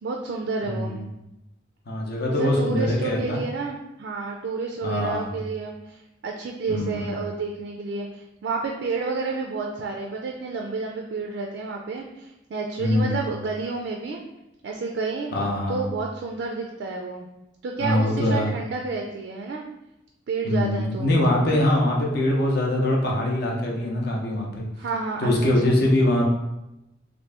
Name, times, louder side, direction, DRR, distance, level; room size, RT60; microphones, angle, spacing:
voice 1, 0.0-1.0 2.3-14.2 14.6-15.3 15.7-17.3 17.6-19.7 20.3-21.1 24.8-25.8, right 4 dB, 60° right, 1 dB, 0.3 m, -30 dB
voice 2, 1.9-3.4 4.8-5.3 6.7-7.1 12.8-13.2 15.3-15.8 17.8-18.5 20.4-24.7 25.2-26.2, left 1 dB, 55° left, -2 dB, 0.7 m, -23 dB
2.9 x 2.6 x 3.3 m, 0.91 s
head